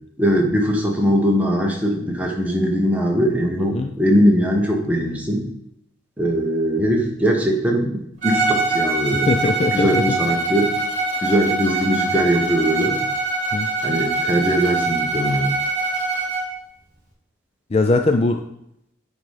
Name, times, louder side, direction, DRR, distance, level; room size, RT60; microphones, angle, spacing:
voice 1, 0.2-5.5 6.2-9.3 9.7-10.7 11.2-13.0 13.8-15.5, equal, 10° right, 0 dB, 1.3 m, -20 dB
voice 2, 3.6-3.9 9.1-10.0 13.5-13.7 17.7-18.4, left 3 dB, 30° left, 6 dB, 0.4 m, -20 dB
Bowed string instrument, 8.2-16.5, right 3 dB, 40° right, 2.8 m, -23 dB
10.0 x 4.0 x 4.9 m, 0.77 s
head